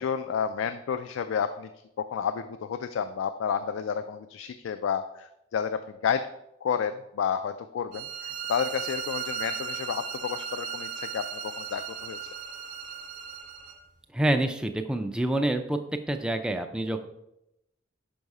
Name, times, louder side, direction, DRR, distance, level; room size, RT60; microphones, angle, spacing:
voice 1, 0.0-1.7 2.0-6.3 6.6-12.2, left 7 dB, 85° left, 9 dB, 0.3 m, -31 dB
sound 1, 7.9-13.8, right 7 dB, 40° right, 0.8 m, -36 dB
voice 2, 14.1-15.8 16.1-17.1, right 1 dB, 5° right, 6 dB, 0.3 m, -27 dB
5.5 x 5.3 x 4.7 m, 0.86 s
head